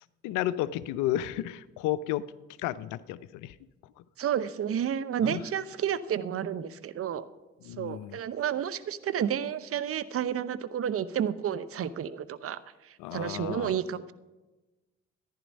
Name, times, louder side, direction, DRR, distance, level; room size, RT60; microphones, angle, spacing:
voice 1, 0.2-2.3 2.6-3.5 5.2-5.4 7.6-8.2 13.0-13.7, left 13 dB, 60° left, 17 dB, 0.6 m, -32 dB
voice 2, 4.2-7.2 7.8-12.6 13.1-14.1, right 9 dB, 40° right, 14 dB, 0.8 m, -31 dB
14.0 x 10.5 x 5.3 m, 1.1 s
figure-of-eight pair, 45°, 34 cm